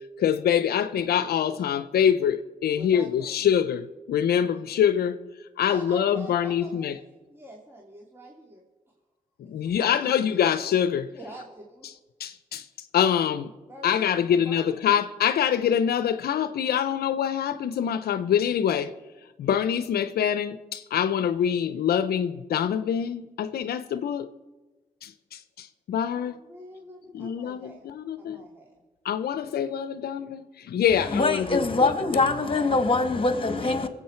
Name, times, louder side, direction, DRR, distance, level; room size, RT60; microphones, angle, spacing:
voice 1, 0.2-5.2 5.6-6.9 9.4-11.1 12.2-12.7 12.9-13.5 13.8-18.9 19.4-24.3 25.0-26.4 27.1-28.4 29.0-32.2, left 9 dB, 80° left, 0.6 m, -25 dB
voice 2, 2.7-3.6 5.7-7.0 7.3-8.6 9.6-10.4 11.1-11.9 13.7-14.9 26.1-28.7, right 1 dB, 15° right, 2.4 m, -45 dB
voice 3, 30.9-33.9, left 3 dB, 35° left, 1.8 m, -23 dB
21.5 x 8.2 x 4.4 m
supercardioid pair, 50°, 16 cm